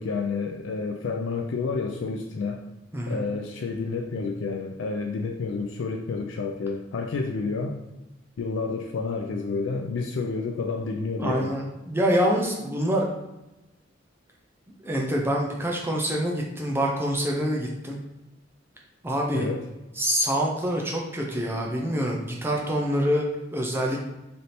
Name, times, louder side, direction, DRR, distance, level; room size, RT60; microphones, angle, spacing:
voice 1, 0.0-2.6 3.1-7.8 8.4-11.5 19.3-19.7, left 4 dB, 70° left, 3 dB, 0.4 m, -29 dB
voice 2, 2.9-3.2 11.2-13.1 14.8-18.0 19.0-19.5 20.0-23.2 23.5-24.0, equal, 10° right, -1 dB, 0.5 m, -26 dB
3.3 x 2.7 x 4.2 m, 0.99 s
head